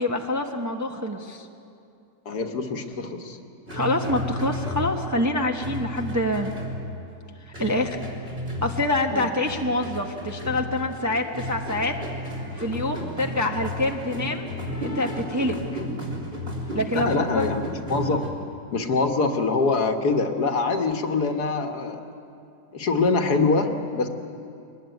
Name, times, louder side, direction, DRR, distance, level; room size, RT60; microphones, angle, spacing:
voice 1, 0.0-1.5 3.7-6.5 7.6-8.0 8.6-11.9 12.5-14.5 14.8-15.8 16.7-17.5, left 1 dB, 10° right, 2 dB, 0.9 m, -26 dB
voice 2, 2.3-3.4 9.1-9.3 16.9-17.6 17.9-18.2 18.7-22.0 22.7-24.1, left 4 dB, 65° left, 5 dB, 1.9 m, -24 dB
sound 1, 3.7-5.3 5.6-7.2 7.5-9.1 9.4-18.3, left 1 dB, 35° right, 3.8 m, -33 dB
23.0 x 19.5 x 9.2 m, 2.6 s
omnidirectional pair, 1.9 m